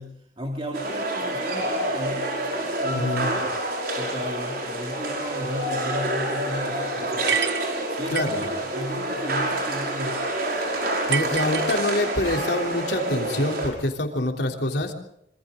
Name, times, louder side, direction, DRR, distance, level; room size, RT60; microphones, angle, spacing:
voice 1, 0.0-3.5 4.0-7.4 7.9-10.2, equal, 30° right, 0 dB, 2.7 m, -34 dB
sound 1, 0.7-13.7, right 1 dB, 60° right, 5.8 m, -28 dB
voice 2, 2.9-3.3 8.1-8.5 10.6-14.9, left 1 dB, 70° left, 3 dB, 3.4 m, -26 dB
sound 2, 7.3-8.5 11.1-12.3, right 7 dB, 75° right, 0.9 m, -28 dB
26.5 x 26.0 x 3.8 m, 0.77 s
head